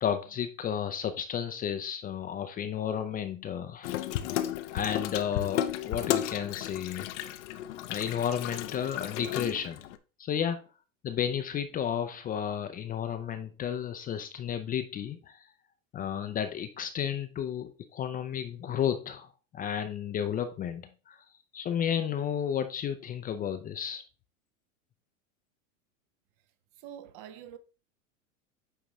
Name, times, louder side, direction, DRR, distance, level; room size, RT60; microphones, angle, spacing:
voice 1, 0.0-4.1 4.7-7.1 7.9-9.8 10.2-10.6 11.0-15.5 15.9-19.3 19.5-21.2 21.5-24.0, left 9 dB, 20° left, 0.5 m, -32 dB
Water tap faucet / Sink (filling or washing), 3.8-10.0, left 11 dB, 60° left, 0.7 m, -34 dB
voice 2, 26.8-27.6, right 10 dB, 45° right, 0.7 m, -45 dB
8.9 x 3.6 x 3.1 m
hypercardioid pair, 100°, 40 cm